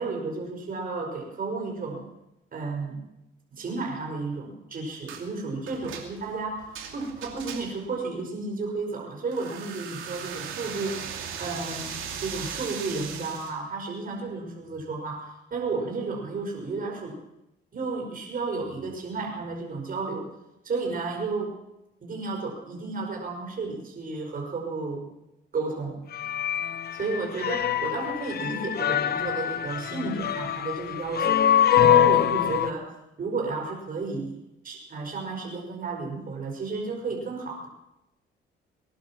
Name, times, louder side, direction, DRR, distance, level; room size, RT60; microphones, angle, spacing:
voice 1, 0.0-2.1 2.5-3.0 3.5-17.2 17.7-20.3 20.6-21.6 22.0-25.1 25.5-26.1 27.0-31.4 31.9-34.4 34.6-37.7, right 3 dB, 45° right, 0 dB, 5.3 m, -32 dB
sound 1, 5.1-5.3 5.7-7.9 9.3-13.6, right 7 dB, 85° right, 2.6 m, -38 dB
sound 2, 26.1-32.7, left 10 dB, 55° left, 0.8 m, -24 dB
20.5 x 11.0 x 6.0 m, 0.91 s
cardioid pair, 90°, 20 cm